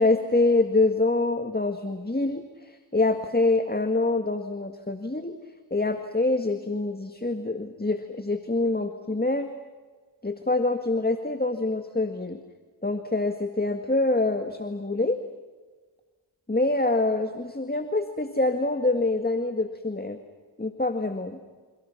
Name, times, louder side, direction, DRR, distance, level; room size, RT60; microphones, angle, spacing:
voice 1, 0.0-5.4 5.7-9.5 10.2-12.4 12.8-15.2 16.5-20.2 20.6-21.4, left 2 dB, 20° left, 7 dB, 1.9 m, -25 dB
30.0 x 29.0 x 5.9 m, 1.4 s
cardioid pair, 45°, 48 cm